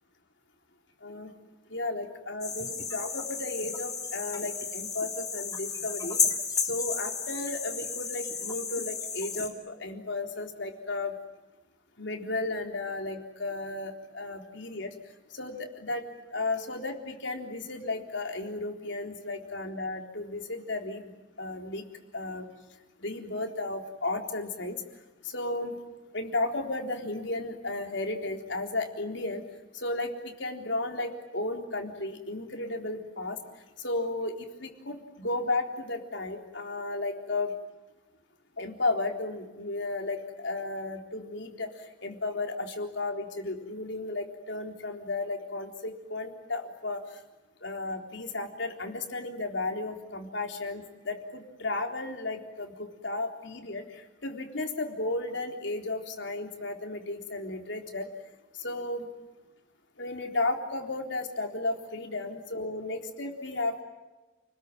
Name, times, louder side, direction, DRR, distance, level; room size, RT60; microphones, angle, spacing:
voice 1, 1.0-1.3 1.7-6.2 6.7-11.2 12.0-14.9 15.3-16.1 16.3-21.1 21.4-21.8 22.1-22.5 23.0-24.8 25.2-25.8 26.1-29.4 29.7-33.4 33.8-37.5 38.6-47.2 47.6-58.1 58.6-59.1 60.0-63.8, left 2 dB, 75° left, 3 dB, 3.8 m, -34 dB
sound 1, 2.4-9.5, left 5 dB, 20° left, 2.7 m, -33 dB
30.0 x 21.0 x 9.4 m, 1.1 s
head